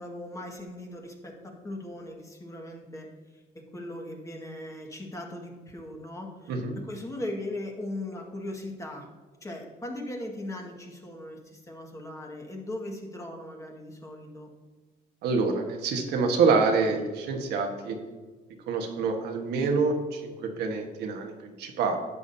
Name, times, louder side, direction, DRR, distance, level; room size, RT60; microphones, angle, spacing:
voice 1, 0.0-3.1 3.3-3.4 3.7-6.5 6.8-9.1 9.4-14.5, left 1 dB, 20° left, 0 dB, 1.8 m, -38 dB
voice 2, 15.2-18.0 18.7-22.0, right 4 dB, 80° right, 2 dB, 1.4 m, -26 dB
11.0 x 8.4 x 2.7 m, 1.3 s
cardioid pair, 110°, 17 cm